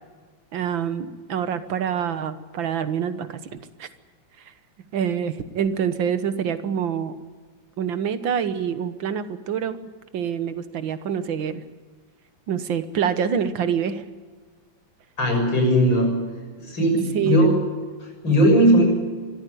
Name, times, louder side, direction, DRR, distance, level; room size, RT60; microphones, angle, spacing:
voice 1, 0.5-3.5 3.8-3.9 4.9-7.2 7.8-11.6 12.5-14.0 17.1-17.5, right 8 dB, 75° right, 11 dB, 2.0 m, -26 dB
voice 2, 15.2-16.1 16.6-17.6 18.0-18.8, equal, 75° left, 3 dB, 7.3 m, -18 dB
25.0 x 14.0 x 9.4 m, 1.5 s
omnidirectional pair, 2.1 m